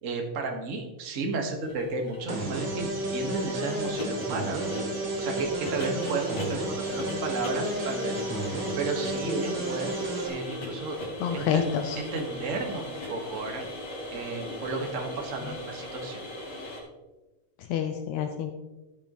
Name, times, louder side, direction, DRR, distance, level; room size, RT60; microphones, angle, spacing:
voice 1, 0.0-4.7 5.2-8.2 8.8-10.0 10.2-11.0 11.3-12.8 13.1-13.6 14.1-16.2, right 3 dB, 40° right, 2 dB, 1.2 m, -33 dB
sound 1, 1.6-16.8, left 1 dB, 60° left, 4.0 m, -38 dB
sound 2, 2.3-10.3, right 2 dB, 55° right, 3.0 m, -32 dB
voice 2, 11.2-12.0 17.7-18.5, left 8 dB, 80° left, 5 dB, 2.0 m, -28 dB
13.5 x 9.1 x 3.0 m, 1.1 s
omnidirectional pair, 3.4 m